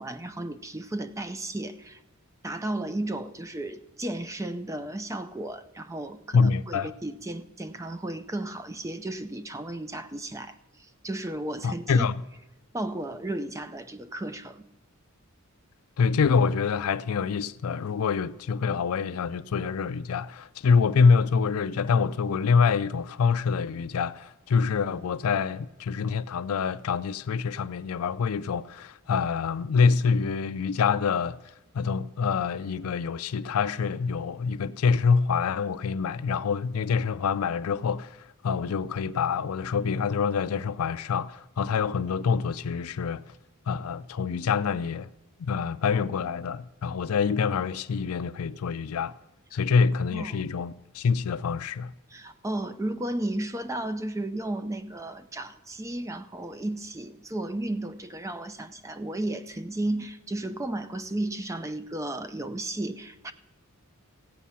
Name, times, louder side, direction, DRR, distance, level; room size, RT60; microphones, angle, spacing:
voice 1, 0.0-2.0 2.4-12.1 12.7-14.7 50.1-50.4 52.1-63.3, right 1 dB, 15° right, 0.5 m, -34 dB
voice 2, 6.3-6.9 11.6-12.2 16.0-31.4 31.7-43.3 43.7-45.1 45.4-49.2 49.5-51.9, left 5 dB, 70° left, 0.4 m, -26 dB
16.0 x 8.3 x 5.6 m
head